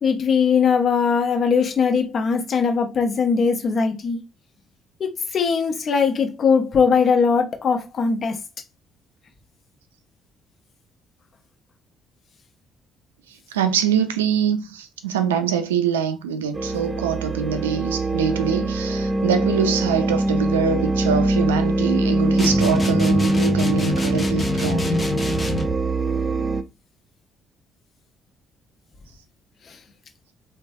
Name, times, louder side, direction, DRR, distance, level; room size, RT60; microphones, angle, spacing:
voice 1, 0.0-4.2 5.0-8.4 29.7-29.8, left 5 dB, 50° left, 0.8 m, -20 dB
voice 2, 13.5-25.1, right 7 dB, 90° right, 0.3 m, -24 dB
sound 1, 16.5-26.6, right 2 dB, 25° right, 0.6 m, -22 dB
sound 2, 22.4-25.8, left 2 dB, 25° left, 0.9 m, -27 dB
3.1 x 2.1 x 2.6 m
hypercardioid pair, 50°, 0 cm